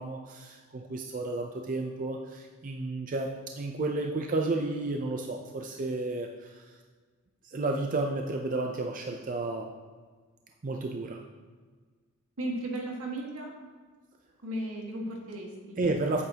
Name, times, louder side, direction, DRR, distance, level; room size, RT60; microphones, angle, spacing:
voice 1, 0.0-3.3 3.6-6.6 7.4-9.7 10.6-11.2 15.8-16.2, right 2 dB, 40° right, 2 dB, 0.5 m, -32 dB
voice 2, 12.4-13.5 14.4-15.8, right 1 dB, 80° right, -1 dB, 1.7 m, -35 dB
9.0 x 8.4 x 2.9 m, 1.5 s
head